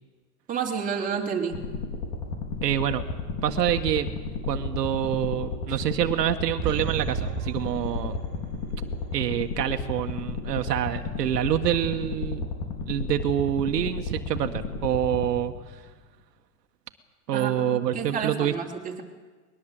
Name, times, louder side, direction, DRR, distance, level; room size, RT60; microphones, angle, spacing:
voice 1, 0.5-1.7 17.3-19.0, right 6 dB, 15° right, 1 dB, 2.9 m, -30 dB
sound 1, 1.5-15.9, left 4 dB, 45° left, 4.8 m, -33 dB
voice 2, 2.6-3.0 3.4-4.1 4.4-8.2 9.1-12.5 12.9-15.8 17.3-18.5, right 10 dB, 80° right, 7 dB, 1.6 m, -26 dB
sound 2, 6.6-8.8 9.1-9.2, right 12 dB, 35° right, 2.3 m, -34 dB
21.5 x 21.0 x 7.8 m, 1.4 s
hypercardioid pair, 140°, 48 cm